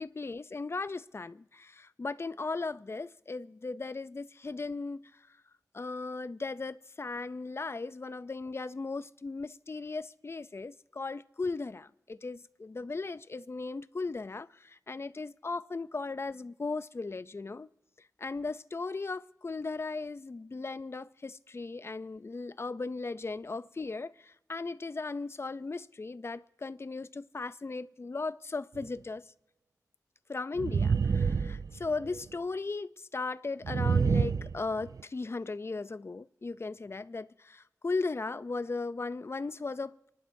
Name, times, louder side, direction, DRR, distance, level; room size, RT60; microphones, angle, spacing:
voice 1, 0.0-5.1 5.7-17.7 18.2-29.2 30.3-40.1, left 3 dB, 45° left, 0.4 m, -37 dB
sound 1, 28.8-28.9 30.6-32.2 33.6-35.0, right 5 dB, 70° right, 0.4 m, -28 dB
29.5 x 11.5 x 2.7 m
wide cardioid pair, 55°, 6 cm